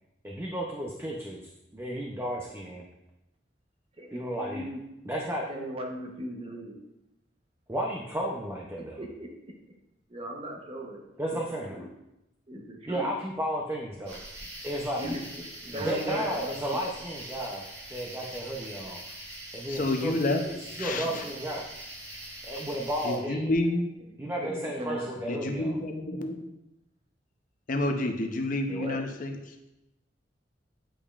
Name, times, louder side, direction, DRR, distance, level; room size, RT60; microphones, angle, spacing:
voice 1, 0.2-1.4 1.7-2.9 4.1-4.6 5.1-5.4 7.7-9.0 11.2-11.8 12.9-14.2 14.6-15.1 15.7-17.6 17.9-19.0 19.5-20.1 20.4-21.6 22.4-23.5 24.2-25.8, right 1 dB, 15° right, -2 dB, 0.6 m, -33 dB
voice 2, 4.0-4.8 5.5-6.8 8.8-9.3 10.1-11.0 11.3-11.9 12.5-13.1 15.0-17.0 24.0-25.1 28.7-29.1, equal, 30° right, 0 dB, 0.9 m, -38 dB
sound 1, 14.0-23.2, right 1 dB, 75° right, 2.0 m, -43 dB
voice 3, 19.7-20.4 20.7-21.2 23.0-23.9 25.2-26.4 27.7-29.6, left 2 dB, 50° left, 5 dB, 0.7 m, -29 dB
8.7 x 5.2 x 2.4 m, 0.91 s
head